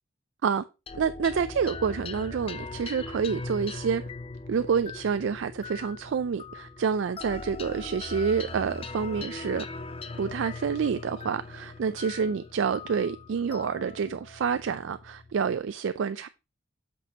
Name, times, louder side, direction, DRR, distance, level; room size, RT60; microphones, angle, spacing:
sound 1, 0.9-15.6, left 3 dB, 30° left, 0.5 m, -40 dB
voice 1, 1.0-4.0 4.5-9.6 10.2-16.3, right 6 dB, 75° right, 0.4 m, -28 dB
8.1 x 6.1 x 2.8 m
head